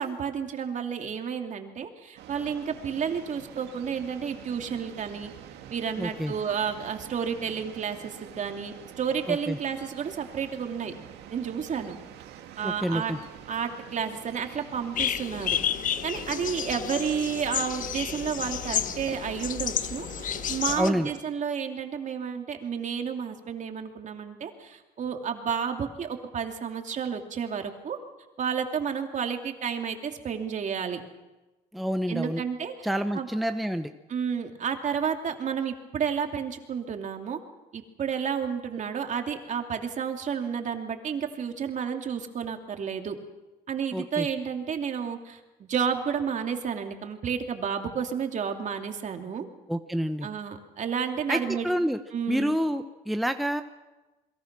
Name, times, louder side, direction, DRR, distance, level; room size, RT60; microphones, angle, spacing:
voice 1, 0.0-5.3 5.7-10.9 11.3-12.0 12.6-13.1 13.5-15.6 16.0-20.1 20.5-28.0 28.4-31.0 32.1-32.9 33.1-33.3 34.1-37.4 37.7-43.2 43.7-49.5 50.2-51.7 52.1-52.6, right 7 dB, 45° right, 4 dB, 2.9 m, -31 dB
sound 1, 2.2-21.2, right 10 dB, 85° right, 2.2 m, -46 dB
voice 2, 6.0-6.3 9.3-9.6 12.6-13.2 20.7-21.1 31.7-32.4 32.8-33.9 43.9-44.3 49.7-50.3 51.3-52.0 52.3-53.6, equal, ahead, 7 dB, 1.0 m, -28 dB
sound 2, 15.0-20.9, left 9 dB, 50° left, 1.2 m, -31 dB
28.5 x 22.0 x 6.1 m, 1.1 s
cardioid pair, 110°, 17 cm